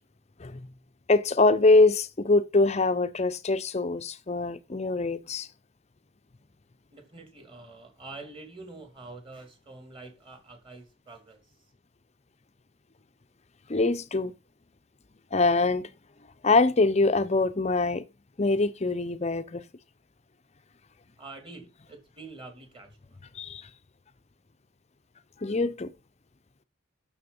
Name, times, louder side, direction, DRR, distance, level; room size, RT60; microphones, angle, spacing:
voice 1, 1.1-5.5 13.7-14.3 15.3-15.9 16.4-18.1 18.4-19.6 23.3-23.7 25.4-25.9, left 3 dB, 30° left, 0.6 m, -23 dB
voice 2, 6.9-11.5 21.2-23.2, right 3 dB, 25° right, 2.8 m, -46 dB
9.6 x 7.1 x 5.4 m
head